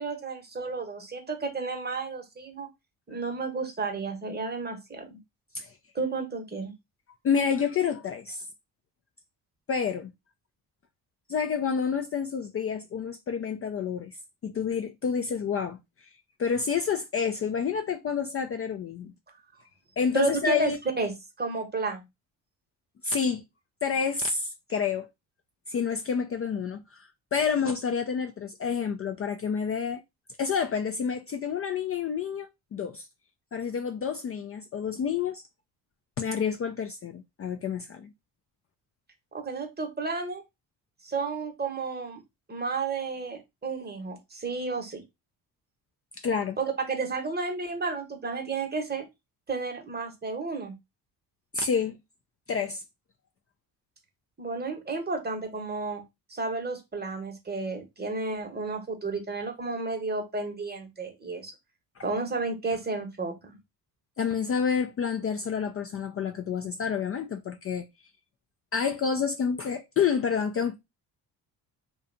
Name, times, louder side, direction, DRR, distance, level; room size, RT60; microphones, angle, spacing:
voice 1, 0.0-2.7 3.1-5.0 5.9-6.7 20.1-22.0 39.3-40.4 41.0-42.2 42.5-45.0 46.6-49.1 49.5-50.7 54.4-56.0 56.3-61.5 62.0-63.6, right 4 dB, 20° right, 0.9 m, -32 dB
voice 2, 7.2-8.5 9.7-10.1 11.3-14.2 14.4-16.1 16.4-19.1 20.0-20.8 23.0-23.4 23.8-25.1 25.7-30.0 30.4-33.1 33.5-35.4 36.2-38.1 46.2-46.6 51.5-52.0 52.5-52.8 64.2-67.9 68.7-70.7, left 6 dB, 35° left, 0.4 m, -29 dB
2.5 x 2.2 x 2.5 m
supercardioid pair, 60°, 44 cm